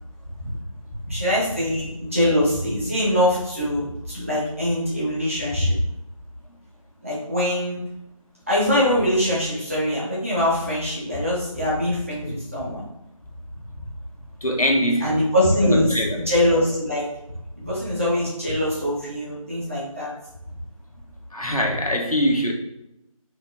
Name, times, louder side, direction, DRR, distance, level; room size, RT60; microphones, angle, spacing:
voice 1, 1.1-5.7 7.0-7.8 8.5-12.8 15.0-15.9 16.3-17.1 17.6-20.1, left 1 dB, 25° right, -7 dB, 1.3 m, -23 dB
voice 2, 14.4-15.1 15.6-16.2 17.6-17.7 21.3-22.5, equal, 80° left, 0 dB, 1.3 m, -23 dB
4.1 x 3.4 x 3.4 m, 0.86 s
figure-of-eight pair, 170°, 18 cm